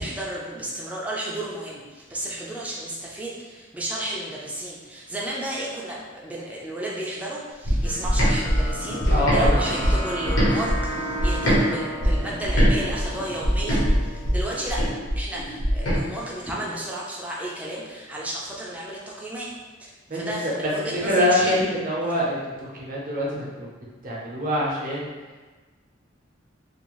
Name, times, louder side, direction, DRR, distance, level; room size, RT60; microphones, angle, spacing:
voice 1, 0.0-19.5 19.8-21.6, right 1 dB, 5° right, -5 dB, 0.4 m, -33 dB
sound 1, 7.6-11.6 12.0-16.0, equal, 85° left, 0.8 m, -22 dB
sound 2, 7.8-14.7, equal, 60° left, 0.5 m, -34 dB
voice 2, 9.1-9.6 20.1-20.5 21.0-23.7 24.0-25.1, left 1 dB, 45° right, -5 dB, 0.7 m, -24 dB
2.6 x 2.3 x 3.0 m, 1.3 s
head